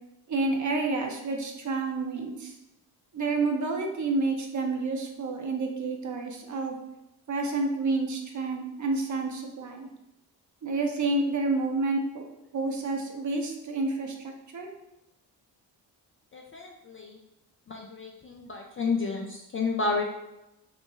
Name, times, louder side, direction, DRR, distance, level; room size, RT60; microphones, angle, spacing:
voice 1, 0.3-2.5 3.1-6.8 7.3-9.9 10.6-12.3 12.5-14.7, right 3 dB, 35° right, 2 dB, 0.7 m, -29 dB
voice 2, 16.3-17.2 17.7-20.0, left 4 dB, 30° left, 0 dB, 0.4 m, -31 dB
3.1 x 2.0 x 3.3 m, 0.91 s
supercardioid pair, 50°, 49 cm